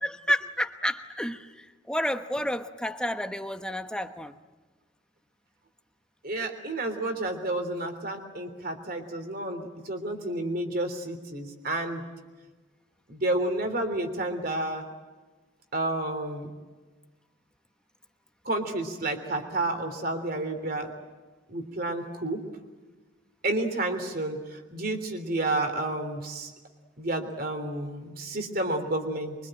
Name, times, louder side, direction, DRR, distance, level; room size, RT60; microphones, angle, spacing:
voice 1, 0.0-4.3, equal, 5° left, 7 dB, 1.1 m, -30 dB
voice 2, 6.2-12.0 13.1-14.8 15.7-16.5 18.4-20.9 21.5-22.4 23.4-26.5 27.0-29.4, right 2 dB, 50° right, 7 dB, 3.3 m, -30 dB
24.0 x 24.0 x 9.0 m, 1.3 s
head